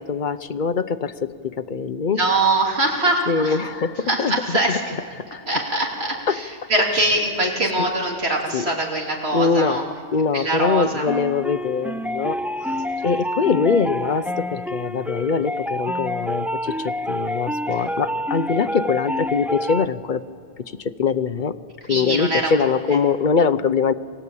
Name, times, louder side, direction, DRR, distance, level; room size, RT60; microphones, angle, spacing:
voice 1, 0.0-2.2 3.3-4.8 5.1-5.6 6.3-6.4 6.8-7.1 7.6-7.9 8.5-8.7 9.3-20.2 20.8-21.5 21.9-23.9, left 5 dB, 50° left, 13 dB, 0.8 m, -23 dB
voice 2, 2.2-3.6 4.1-4.9 5.3-9.9 10.3-11.1 12.9-13.0 17.8-17.9 21.9-22.6, right 2 dB, 65° right, 0 dB, 3.4 m, -23 dB
sound 1, 11.1-19.9, equal, 5° right, 0.3 m, -28 dB
28.5 x 19.5 x 8.5 m, 2.6 s
omnidirectional pair, 1.2 m